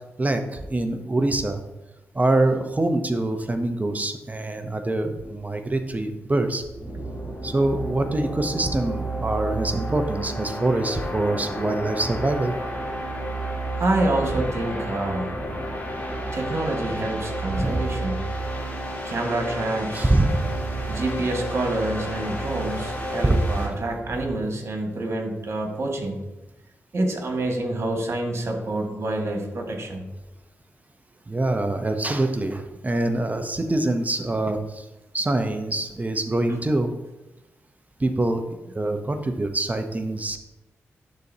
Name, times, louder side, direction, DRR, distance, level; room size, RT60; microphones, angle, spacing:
voice 1, 0.2-1.6 2.1-6.6 7.4-12.5 17.6-17.8 19.9-21.0 23.2-23.4 31.3-34.9 35.1-36.9 38.0-40.4, right 2 dB, 30° right, 7 dB, 0.8 m, -24 dB
sound 1, 6.6-23.7, right 1 dB, 30° left, 2.2 m, -31 dB
voice 2, 13.8-15.3 16.3-18.2 19.1-20.1 20.9-26.2 26.9-30.1, right 2 dB, 55° right, 2 dB, 1.8 m, -27 dB
11.5 x 4.2 x 2.8 m, 1.0 s
supercardioid pair, 45°, 5 cm